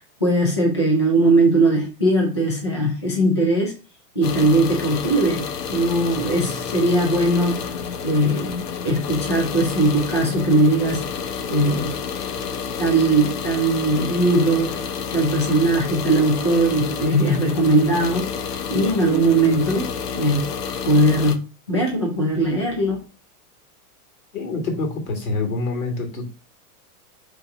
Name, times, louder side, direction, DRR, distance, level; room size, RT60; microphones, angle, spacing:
voice 1, 0.2-3.7 4.2-7.7 8.0-11.1 11.5-12.0 12.8-14.8 15.1-18.3 18.7-20.5 20.8-23.0, right 1 dB, 20° left, -2 dB, 0.3 m, -20 dB
sound 1, 4.2-21.4, left 6 dB, 80° left, 1.3 m, -30 dB
voice 2, 24.3-26.3, left 3 dB, 60° left, 3 dB, 2.9 m, -26 dB
5.2 x 3.8 x 5.6 m, 0.33 s
supercardioid pair, 180°, 47 cm